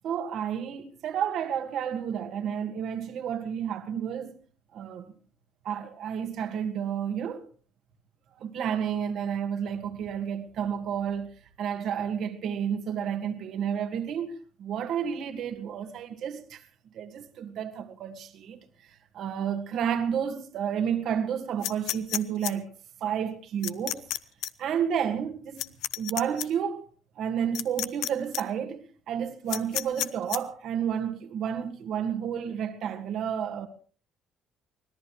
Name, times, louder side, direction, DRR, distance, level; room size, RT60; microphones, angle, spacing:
voice 1, 0.0-4.4 4.7-5.1 5.6-7.5 8.4-16.6 16.9-22.7 23.0-24.0 24.6-26.9 27.2-33.7, right 8 dB, 60° right, 1.8 m, -31 dB
sound 1, 21.6-22.5 23.6-24.2 24.4-24.5 25.6-26.5 27.5-28.1 28.3-28.4 29.5-30.4, left 14 dB, 85° left, 0.8 m, -30 dB
24.5 x 18.0 x 3.2 m
cardioid pair, 145°, 0 cm